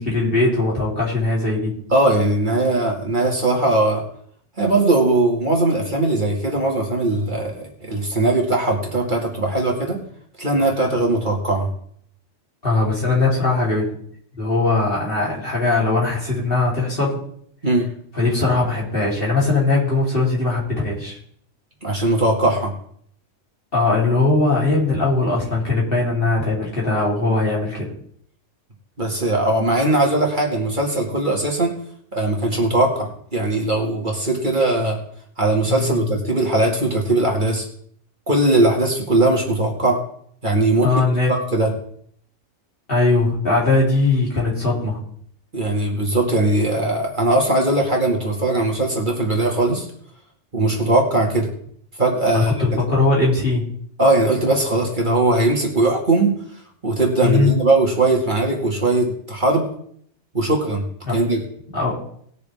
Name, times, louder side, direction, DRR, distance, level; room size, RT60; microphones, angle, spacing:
voice 1, 0.0-1.7 12.6-13.9 14.4-17.2 18.1-21.2 23.7-27.9 35.7-36.0 40.8-41.3 42.9-45.0 52.3-53.6 57.2-57.5 61.0-61.2 61.7-62.0, left 3 dB, 50° left, -4 dB, 3.6 m, -20 dB
voice 2, 1.9-4.0 4.6-7.5 7.8-10.0 10.4-11.7 17.6-17.9 21.8-22.7 29.0-31.7 32.1-35.0 35.4-37.6 38.3-40.0 40.4-40.9 41.3-41.7 45.5-49.9 50.5-51.5 52.0-52.5 54.0-56.3 56.8-59.7 60.3-60.8 61.1-61.4, right 2 dB, 40° right, -1 dB, 2.3 m, -19 dB
19.5 x 6.7 x 3.5 m, 0.64 s
omnidirectional pair, 1.2 m